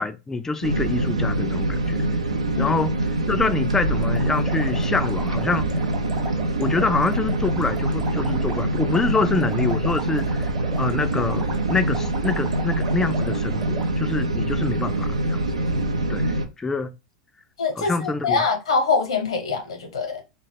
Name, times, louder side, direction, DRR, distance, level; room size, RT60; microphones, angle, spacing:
voice 1, 0.0-2.0 2.6-3.0 3.3-5.7 6.6-10.5 10.8-15.4 16.1-16.9 17.8-18.4, left 4 dB, 15° left, 0.3 m, -26 dB
sound 1, 0.6-16.5, right 1 dB, 90° right, 0.4 m, -24 dB
sound 2, 3.9-13.9, right 4 dB, 35° right, 0.8 m, -37 dB
voice 2, 17.6-20.2, left 4 dB, 75° left, 0.8 m, -24 dB
2.3 x 2.0 x 3.3 m
hypercardioid pair, 90°, 3 cm